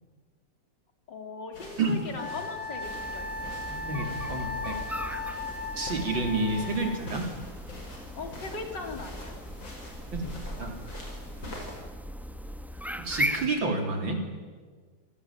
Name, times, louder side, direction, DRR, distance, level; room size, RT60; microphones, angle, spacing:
voice 1, 1.1-3.5 8.2-9.4, left 3 dB, 70° left, 5 dB, 3.8 m, -39 dB
sound 1, 1.5-11.8, left 1 dB, 85° left, 6.5 m, -45 dB
Wind instrument woodwind instrument, 2.2-7.0, left 3 dB, 25° left, 1.0 m, -37 dB
sound 2, 2.8-13.5, equal, ahead, 0.7 m, -38 dB
voice 2, 3.7-4.8 5.8-7.3 10.0-10.7 11.3-11.4 13.0-14.2, right 3 dB, 85° right, 4 dB, 4.2 m, -30 dB
27.0 x 18.0 x 8.9 m, 1.5 s
omnidirectional pair, 2.0 m